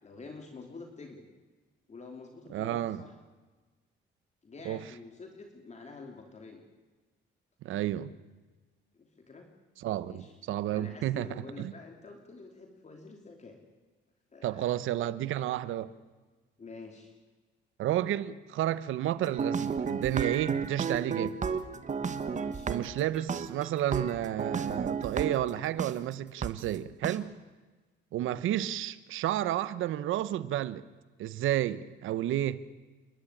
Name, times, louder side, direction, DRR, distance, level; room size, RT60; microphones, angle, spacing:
voice 1, 0.0-1.2 1.9-3.2 4.4-6.6 8.9-9.5 10.0-10.3 10.7-13.6 14.3-14.8 16.6-17.1 22.1-22.7 28.2-28.5, left 3 dB, 35° left, 2.9 m, -48 dB
voice 2, 2.5-3.0 4.6-4.8 7.6-8.1 9.8-11.7 14.4-15.9 17.8-21.4 22.7-27.3 28.1-30.8 31.2-32.6, right 13 dB, 85° right, 1.0 m, -31 dB
sound 1, 19.2-25.9 26.4-26.5 27.0-27.2, right 5 dB, 40° right, 1.4 m, -33 dB
29.0 x 11.5 x 10.0 m
cardioid pair, 90°, 20 cm